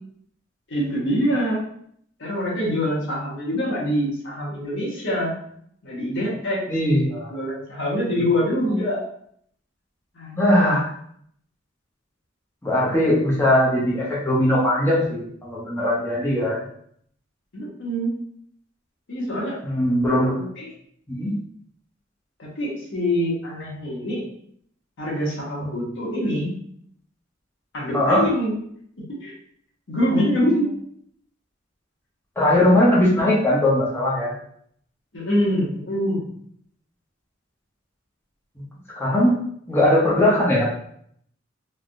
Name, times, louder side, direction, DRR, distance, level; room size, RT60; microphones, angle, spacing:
voice 1, 0.7-1.6 2.2-5.4 5.8-6.6 7.3-9.0 10.1-10.7 17.5-18.1 19.1-19.6 20.6-20.7 22.4-24.2 25.0-26.5 27.7-28.5 29.2-29.3 29.9-30.7 35.1-36.2, equal, 70° left, -4 dB, 0.9 m, -25 dB
voice 2, 6.7-7.3 8.6-8.8 10.4-10.9 12.6-16.6 19.6-20.5 21.1-21.3 27.9-28.3 32.4-34.3 38.9-39.4 39.7-40.7, left 1 dB, 10° left, -6 dB, 0.7 m, -20 dB
3.3 x 2.2 x 2.5 m, 0.66 s
head